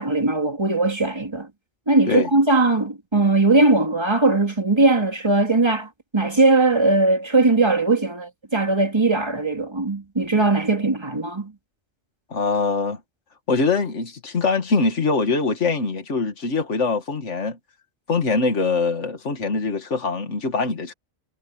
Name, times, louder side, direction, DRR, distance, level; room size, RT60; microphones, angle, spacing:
voice 1, 0.0-1.5 1.9-11.5, right 2 dB, 20° right, 2.3 m, -19 dB
voice 2, 12.3-13.0 13.5-17.6 18.1-20.9, left 4 dB, 70° left, 2.3 m, -23 dB
omnidirectional pair, 1.3 m